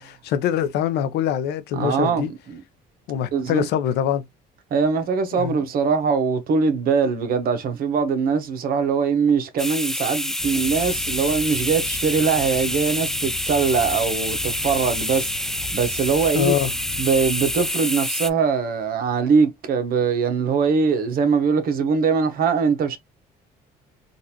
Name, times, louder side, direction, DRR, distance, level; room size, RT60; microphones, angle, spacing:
voice 1, 0.2-2.3 3.1-4.2 5.3-5.6 16.3-16.7, left 9 dB, 80° left, 0.7 m, -23 dB
voice 2, 1.7-2.6 3.3-3.7 4.7-16.5 17.0-23.0, right 5 dB, 60° right, 1.0 m, -22 dB
sound 1, 9.6-18.3, left 1 dB, 5° left, 0.3 m, -27 dB
sound 2, 10.4-17.7, left 3 dB, 55° left, 0.9 m, -39 dB
3.9 x 2.5 x 2.8 m
cardioid pair, 110°, 17 cm